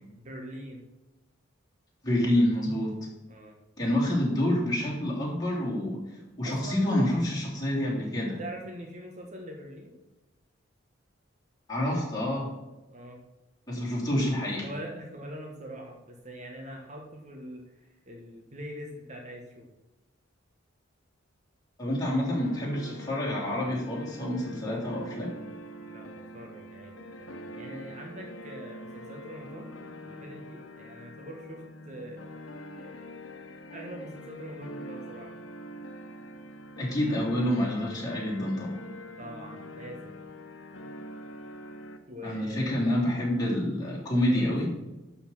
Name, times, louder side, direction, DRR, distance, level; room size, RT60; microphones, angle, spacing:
voice 1, 0.2-0.8 3.3-3.6 6.4-6.9 8.4-9.9 12.9-13.2 14.6-19.7 25.9-29.7 30.1-32.2 32.8-33.1 33.7-35.3 39.2-40.2 42.1-42.7 44.2-44.7, equal, 40° right, 1 dB, 1.3 m, -43 dB
voice 2, 2.0-3.0 3.8-8.4 11.7-12.5 13.7-14.7 21.8-25.3 36.8-38.8 42.2-44.7, left 1 dB, 20° left, -5 dB, 3.4 m, -28 dB
sound 1, 22.4-42.0, equal, 85° left, 1.0 m, -44 dB
11.5 x 4.3 x 7.4 m, 1.0 s
head